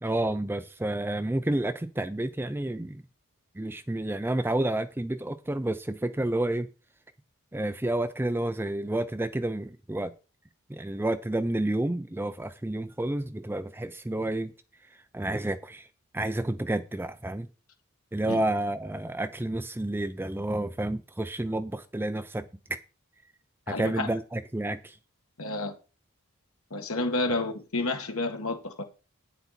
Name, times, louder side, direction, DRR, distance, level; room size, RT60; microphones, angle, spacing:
voice 1, 0.0-3.0 3.6-6.7 7.5-10.1 10.7-14.5 15.1-15.9 16.1-17.5 18.1-22.5 23.7-25.0, right 1 dB, 10° right, 0.5 m, -30 dB
voice 2, 23.7-24.1 25.4-25.8 26.7-28.8, left 2 dB, 70° left, 2.0 m, -30 dB
9.3 x 8.0 x 4.2 m
head